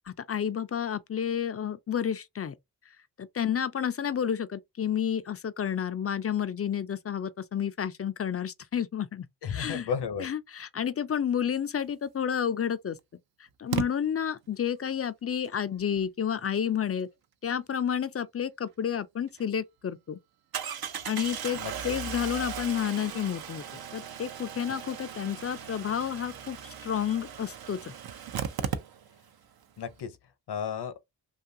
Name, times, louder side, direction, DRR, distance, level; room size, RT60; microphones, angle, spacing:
voice 1, 0.3-2.5 3.2-9.9 10.2-13.0 13.6-17.1 17.4-20.2 21.1-23.6 23.9-26.6 26.8-27.9, left 8 dB, 35° left, 0.4 m, -30 dB
voice 2, 9.4-10.3 21.5-21.9 29.8-30.2 30.5-30.9, left 7 dB, 65° left, 0.7 m, -33 dB
Engine starting, 12.2-12.3 13.7-13.9 18.9-19.0 19.4-19.5 20.5-29.3 29.6-29.7 29.9-30.0, right 8 dB, 60° right, 0.6 m, -37 dB
2.7 x 2.3 x 2.6 m
cardioid pair, 45°, 43 cm